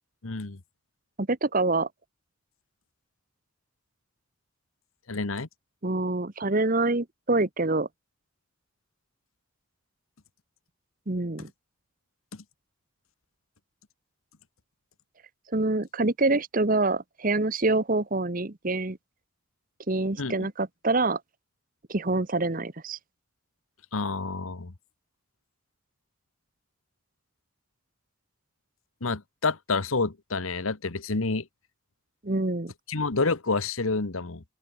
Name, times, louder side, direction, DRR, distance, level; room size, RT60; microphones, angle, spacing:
voice 1, 0.2-0.6 5.1-5.5 12.3-12.4 20.2-20.5 23.9-24.7 29.0-31.5 32.9-34.4, left 3 dB, 90° left, 1.3 m, -29 dB
voice 2, 1.2-1.9 5.8-7.9 11.1-11.5 15.5-19.0 19.9-21.2 21.9-23.0 32.2-32.7, right 2 dB, 40° right, 1.2 m, -26 dB
open air
head